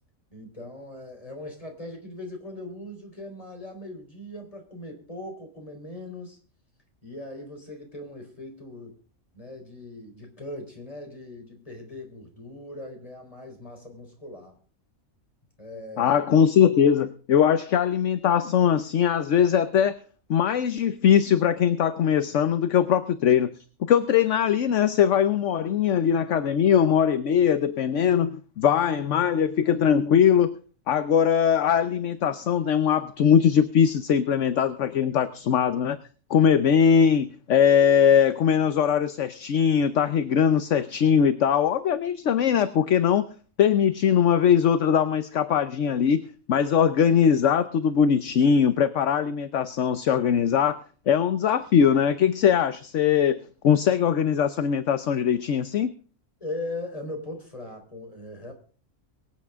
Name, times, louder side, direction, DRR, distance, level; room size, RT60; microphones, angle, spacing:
voice 1, 0.3-6.4 7.0-9.0 9.3-14.6 15.6-16.2 56.4-58.5, left 1 dB, 25° left, 2 dB, 4.1 m, -39 dB
voice 2, 16.0-20.0 20.3-23.5 23.9-30.6 30.9-36.0 36.3-43.2 43.6-46.2 46.5-50.8 51.1-53.4 53.6-55.9, left 8 dB, 65° left, 12 dB, 1.1 m, -21 dB
23.5 x 8.7 x 3.6 m, 0.41 s
omnidirectional pair, 1.4 m